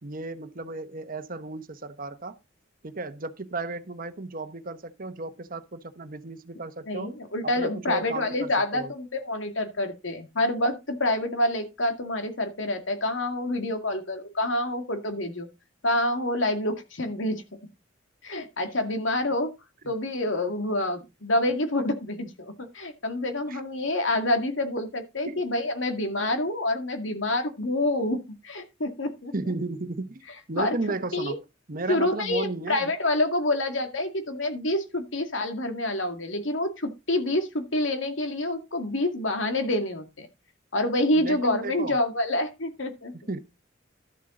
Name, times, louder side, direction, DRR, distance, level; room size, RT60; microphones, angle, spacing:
voice 1, 0.0-2.4 2.8-7.2 7.6-8.9 19.8-19.9 23.5-23.6 25.3-25.4 29.3-30.2 30.5-31.4 31.7-32.9 41.1-42.0 43.3-43.4, right 3 dB, 50° right, 1.1 m, -34 dB
voice 2, 6.9-15.5 15.8-17.4 18.2-19.5 19.9-29.3 30.6-30.8 31.1-31.3 31.9-40.3 40.7-43.3, left 1 dB, 90° left, 2.2 m, -27 dB
12.5 x 7.4 x 3.8 m
head